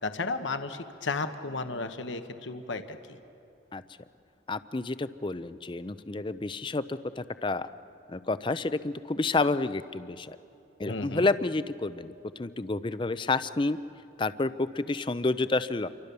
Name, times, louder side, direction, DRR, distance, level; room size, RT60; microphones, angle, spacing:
voice 1, 0.0-3.2 10.9-11.3, left 3 dB, 80° left, 8 dB, 1.0 m, -34 dB
voice 2, 4.5-7.7 8.1-10.4 10.8-12.1 12.4-13.8 14.2-15.9, left 3 dB, 25° left, 14 dB, 0.5 m, -29 dB
28.0 x 24.0 x 6.9 m, 2.8 s
head